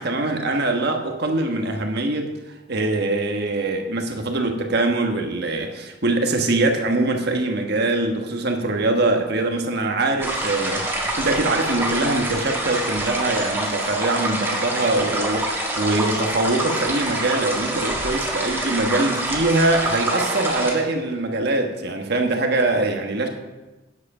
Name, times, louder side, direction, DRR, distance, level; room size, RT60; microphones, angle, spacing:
voice 1, 0.0-2.3 2.7-10.9 11.2-23.3, right 2 dB, 55° right, 3 dB, 1.4 m, -23 dB
sound 1, 10.2-20.7, right 1 dB, 10° right, 1.7 m, -26 dB
9.7 x 7.8 x 5.5 m, 1.1 s
head